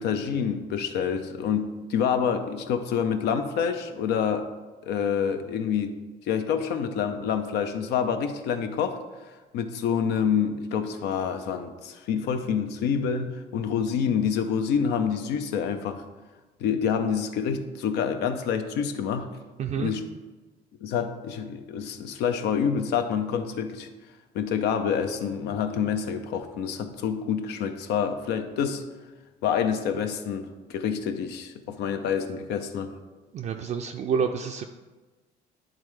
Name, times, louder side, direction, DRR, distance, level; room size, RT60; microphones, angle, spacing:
voice 1, 0.0-4.5 4.9-5.9 6.3-9.0 9.5-16.0 16.6-19.3 19.7-20.0 20.8-23.9 24.3-28.8 29.4-32.9, left 7 dB, 85° left, 8 dB, 0.6 m, -27 dB
voice 2, 19.6-19.9 33.3-34.7, right 6 dB, 45° right, 3 dB, 0.4 m, -28 dB
10.5 x 3.6 x 3.2 m, 1.3 s
cardioid pair, 110°, 17 cm